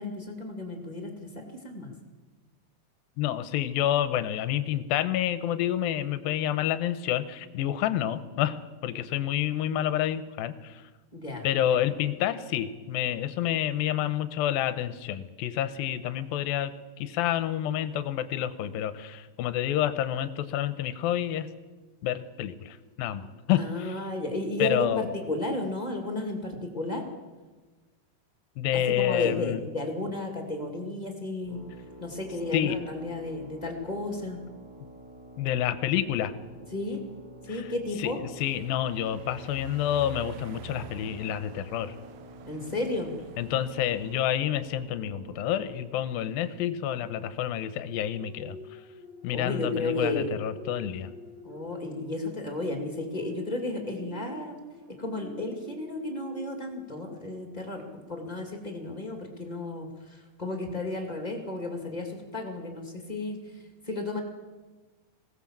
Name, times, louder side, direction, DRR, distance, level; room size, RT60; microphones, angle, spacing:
voice 1, 0.0-1.9 11.1-11.9 23.6-27.0 28.7-31.6 32.0-34.4 36.7-37.0 37.5-38.2 42.4-43.1 49.3-50.4 51.4-54.6 55.0-57.8 58.1-64.2, left 2 dB, 20° left, 2 dB, 1.3 m, -33 dB
voice 2, 3.2-8.6 8.8-10.8 11.4-21.5 22.0-23.9 24.6-25.0 28.6-29.6 32.5-32.8 35.4-36.3 37.5-37.7 38.0-41.9 43.4-48.6 49.2-51.1, left 11 dB, 75° left, 12 dB, 2.4 m, -29 dB
sound 1, 31.4-46.0, equal, 70° right, 5.6 m, -48 dB
sound 2, 38.4-44.3, right 9 dB, 90° right, 1.7 m, -48 dB
sound 3, 48.1-58.0 58.4-58.6, left 2 dB, 25° right, 5.4 m, -46 dB
21.0 x 17.0 x 7.5 m, 1.3 s
omnidirectional pair, 4.8 m